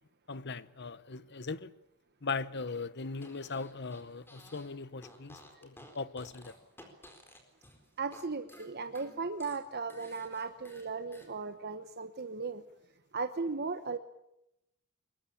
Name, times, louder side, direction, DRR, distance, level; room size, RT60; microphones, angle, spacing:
voice 1, 0.3-1.7 2.2-6.6, left 4 dB, 50° left, 1.0 m, -39 dB
Fart, 3.1-4.7 5.0-8.2 8.5-11.3, equal, 10° left, 4.2 m, -55 dB
voice 2, 8.0-12.6 13.1-14.0, right 4 dB, 45° right, 1.1 m, -36 dB
23.0 x 21.5 x 8.7 m
head